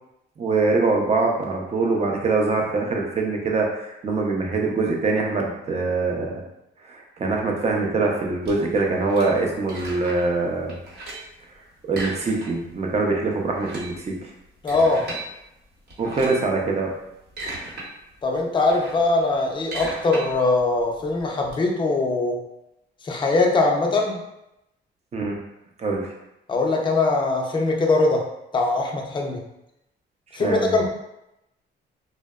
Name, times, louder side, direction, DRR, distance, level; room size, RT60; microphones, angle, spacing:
voice 1, 0.4-6.4 6.8-10.7 11.9-14.3 16.0-16.9 25.1-25.4 25.8-26.1 30.4-30.8, right 3 dB, 35° right, 0 dB, 0.5 m, -23 dB
sound 1, 8.4-10.4 10.7-11.4 11.9-12.8 13.0-13.1 13.5-15.2 15.9-16.5 17.0-17.9 18.2-21.5, right 2 dB, 55° right, 1.0 m, -37 dB
voice 2, 14.6-15.1 18.2-22.4 23.0-24.2 26.5-28.3 28.5-29.4 30.3-30.9, left 3 dB, 25° left, 0 dB, 0.4 m, -21 dB
2.7 x 2.0 x 2.2 m, 0.86 s
cardioid pair, 90°, 20 cm